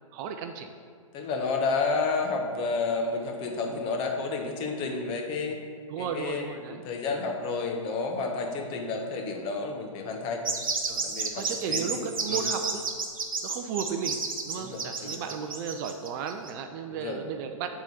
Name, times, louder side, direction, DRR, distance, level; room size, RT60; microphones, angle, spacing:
voice 1, 0.1-0.7 5.9-6.8 10.9-12.8 13.4-17.8, right 6 dB, 35° right, 6 dB, 0.5 m, -34 dB
voice 2, 1.1-5.6 6.0-10.5 11.0-12.5 14.5-15.2 16.9-17.2, left 4 dB, 30° left, 2 dB, 1.0 m, -31 dB
sound 1, 10.4-16.5, right 4 dB, 80° right, 1.2 m, -31 dB
9.0 x 3.8 x 5.8 m, 2.1 s
hypercardioid pair, 125°, 17 cm